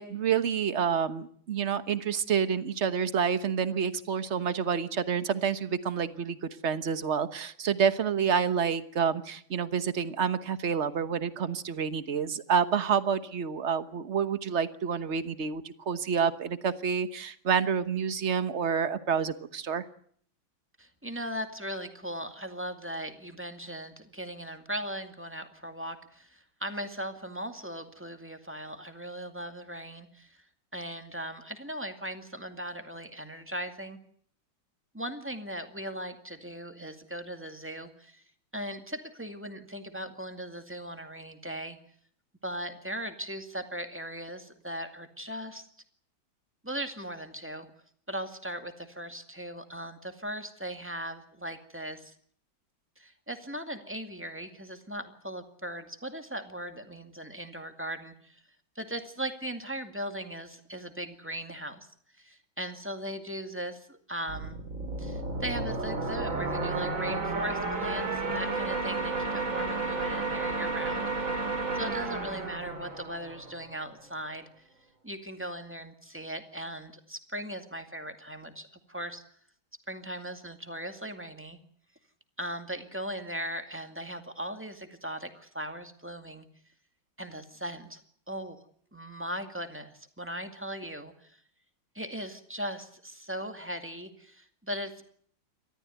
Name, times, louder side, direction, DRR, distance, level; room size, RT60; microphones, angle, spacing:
voice 1, 0.0-19.8, right 7 dB, 40° right, 12 dB, 1.3 m, -28 dB
voice 2, 20.8-30.4 30.7-34.0 34.9-38.2 38.5-41.8 42.4-45.6 46.6-47.7 48.1-52.1 53.0-58.4 58.8-61.9 62.2-64.6 65.0-71.5 71.7-74.5 75.0-79.2 79.9-81.6 82.4-86.5 87.2-88.0 88.3-88.6 88.9-91.4 91.9-95.0, right 1 dB, 5° right, 6 dB, 2.0 m, -38 dB
sound 1, 64.3-73.8, right 3 dB, 85° right, 4.7 m, -32 dB
30.0 x 14.0 x 9.3 m, 0.62 s
omnidirectional pair, 2.1 m